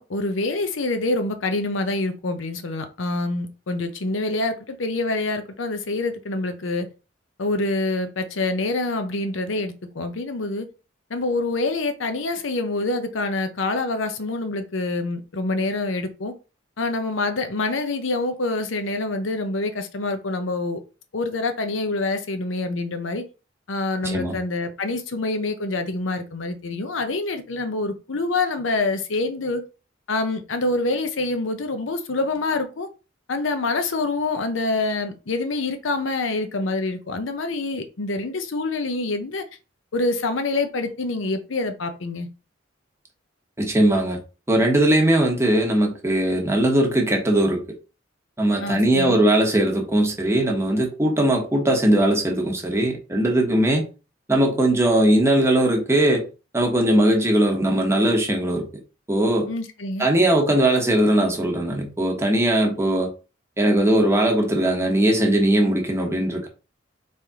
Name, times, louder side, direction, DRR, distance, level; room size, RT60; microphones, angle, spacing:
voice 1, 0.0-6.9 7.4-10.7 11.1-16.3 16.8-20.8 21.1-23.3 23.7-29.6 30.1-32.9 33.3-39.4 39.9-42.3 48.6-49.2 59.5-60.1, left 2 dB, 85° left, 0.7 m, -26 dB
voice 2, 24.0-24.3 43.6-44.2 44.5-47.6 48.4-53.8 54.3-56.2 56.5-58.7 59.1-59.5 60.0-63.1 63.6-66.5, right 1 dB, 15° right, 1.0 m, -19 dB
4.2 x 3.3 x 3.6 m
head